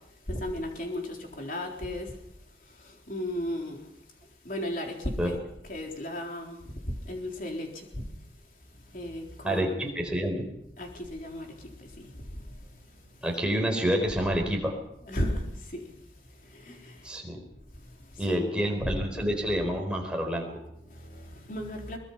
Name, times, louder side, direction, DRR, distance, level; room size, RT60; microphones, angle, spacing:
voice 1, 0.3-2.1 2.7-3.8 4.4-5.4 5.6-6.6 6.9-8.0 8.9-10.0 10.8-12.6 15.0-15.9 16.4-17.1 17.8-19.3 20.7-22.0, left 1 dB, 45° left, 1 dB, 3.9 m, -35 dB
voice 2, 9.4-10.4 13.2-14.8 17.0-17.4 18.2-20.6, equal, 5° right, 1 dB, 4.2 m, -28 dB
23.0 x 20.0 x 5.6 m, 0.81 s
head